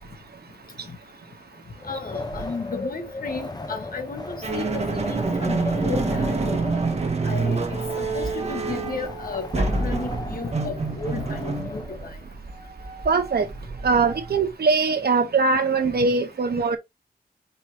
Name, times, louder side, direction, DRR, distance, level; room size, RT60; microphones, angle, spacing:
Wind, 1.8-12.1, left 2 dB, 25° left, 0.7 m, -37 dB
voice 1, 1.9-6.6 7.2-12.1, left 4 dB, 60° left, 1.3 m, -34 dB
sound 1, 4.4-14.5, right 3 dB, 40° right, 1.2 m, -27 dB
voice 2, 13.0-13.5 13.8-16.8, right 4 dB, 75° right, 1.1 m, -21 dB
5.3 x 3.0 x 3.0 m
wide cardioid pair, 80°, 16 cm